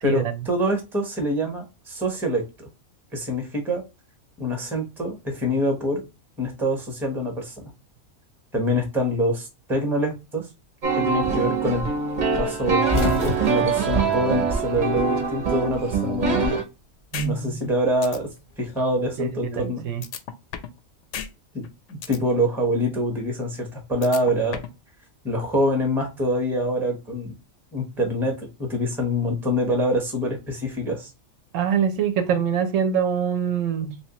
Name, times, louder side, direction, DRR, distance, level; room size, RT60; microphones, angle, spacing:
voice 1, 0.0-2.4 3.1-3.8 4.4-6.0 6.4-7.5 8.5-10.4 10.9-11.8 12.4-16.6 17.2-18.3 18.6-19.8 21.5-21.6 21.9-24.6 25.2-27.3 27.7-31.1, equal, ahead, 0.8 m, -25 dB
sound 1, 10.8-16.6, right 5 dB, 40° right, 0.7 m, -23 dB
sound 2, 12.6-15.1 15.4-16.5 17.7-19.1, left 3 dB, 40° left, 0.7 m, -30 dB
sound 3, 17.1-17.3 17.6-17.7 18.0-18.2 20.0-20.8 21.1-21.3 21.6-22.2 24.0-24.8, left 8 dB, 65° left, 0.8 m, -33 dB
voice 2, 17.1-17.6 19.2-20.0 31.5-34.0, right 8 dB, 70° right, 0.9 m, -24 dB
3.3 x 2.9 x 2.9 m
omnidirectional pair, 1.4 m